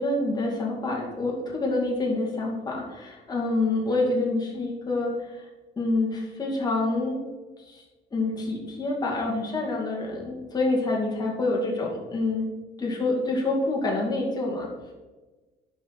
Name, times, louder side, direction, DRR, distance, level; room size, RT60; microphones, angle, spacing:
voice 1, 0.0-5.5 5.8-7.2 7.7-7.8 8.1-12.5 12.8-14.7, left 2 dB, 25° left, -2 dB, 2.5 m, -27 dB
11.5 x 5.1 x 4.3 m, 1.2 s
cardioid pair, 110°, 17 cm